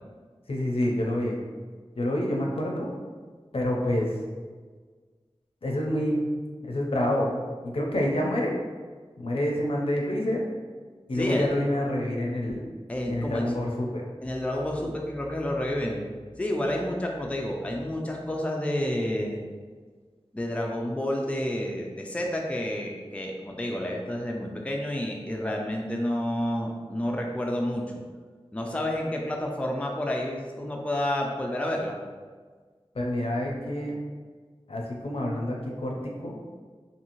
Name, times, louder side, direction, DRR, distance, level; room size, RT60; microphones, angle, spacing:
voice 1, 0.5-1.4 2.0-2.9 3.5-4.2 5.6-6.3 6.6-7.4 7.6-8.6 9.2-10.5 11.1-12.6 13.1-14.0 32.9-34.0 34.7-36.4, left 1 dB, 70° left, -1 dB, 0.5 m, -27 dB
voice 2, 11.1-11.5 12.9-13.5 14.2-16.0 16.4-19.4 20.3-27.9 28.5-32.0, left 1 dB, 10° left, 0 dB, 0.4 m, -29 dB
2.7 x 2.6 x 2.9 m, 1.5 s
wide cardioid pair, 55°, 10 cm